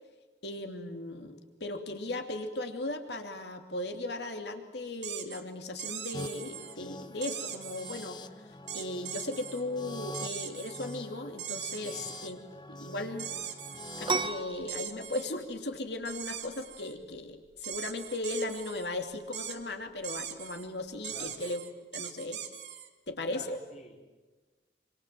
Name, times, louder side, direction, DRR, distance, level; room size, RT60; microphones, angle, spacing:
voice 1, 0.4-12.4 12.7-13.3 14.0-21.6 21.9-22.4 23.1-23.6, left 2 dB, 70° left, 5 dB, 2.8 m, -37 dB
sound 1, 5.0-5.4 5.8-6.7 7.2-8.1 8.7-9.6 10.1-11.0 11.4-12.3 13.2-14.2 14.7-15.3 16.0-16.9 17.6-18.9 19.3-19.6 20.0-20.7 21.0-22.9, right 10 dB, 80° right, 2.7 m, -41 dB
sound 2, 6.1-14.4, left 2 dB, 25° left, 0.9 m, -45 dB
sound 3, 14.1-21.4, right 4 dB, 30° right, 1.1 m, -39 dB
voice 2, 21.0-21.4 23.3-24.1, left 1 dB, 40° left, 0 dB, 4.4 m, -50 dB
27.0 x 26.5 x 7.6 m, 1.2 s
head